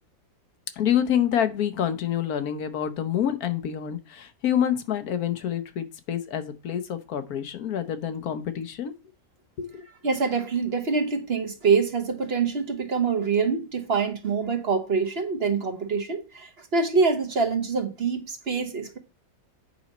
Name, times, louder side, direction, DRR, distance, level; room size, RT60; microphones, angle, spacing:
voice 1, 0.8-8.9 9.6-9.8, left 9 dB, 90° left, 1.4 m, -27 dB
voice 2, 10.0-19.0, right 5 dB, 50° right, 1.1 m, -25 dB
8.2 x 5.1 x 4.2 m
omnidirectional pair, 1.5 m